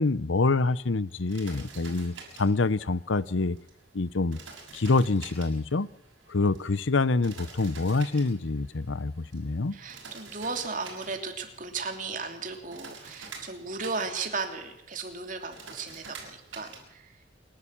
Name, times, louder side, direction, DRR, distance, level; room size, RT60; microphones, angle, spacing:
voice 1, 0.0-3.6 3.9-4.4 4.7-5.9 6.3-9.8, left 3 dB, 75° left, 18 dB, 0.8 m, -26 dB
sound 1, 1.1-16.8, right 4 dB, 70° right, 6.7 m, -48 dB
voice 2, 9.7-17.2, right 4 dB, 40° right, 5 dB, 2.9 m, -35 dB
28.0 x 12.0 x 8.7 m, 0.77 s
head